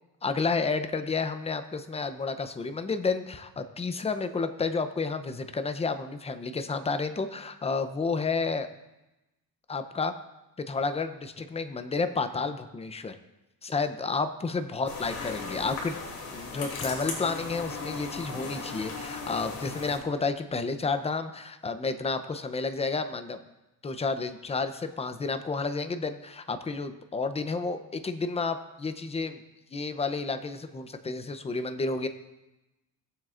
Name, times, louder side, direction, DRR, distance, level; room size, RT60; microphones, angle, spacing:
voice 1, 0.2-8.7 9.7-10.1 10.7-13.2 13.6-16.0 16.3-23.4 23.8-29.4 29.7-32.1, left 4 dB, 15° left, 9 dB, 0.6 m, -31 dB
sound 1, 14.9-20.0, left 4 dB, 70° left, 2.8 m, -37 dB
18.0 x 7.6 x 2.5 m, 0.99 s
cardioid pair, 125°, 38 cm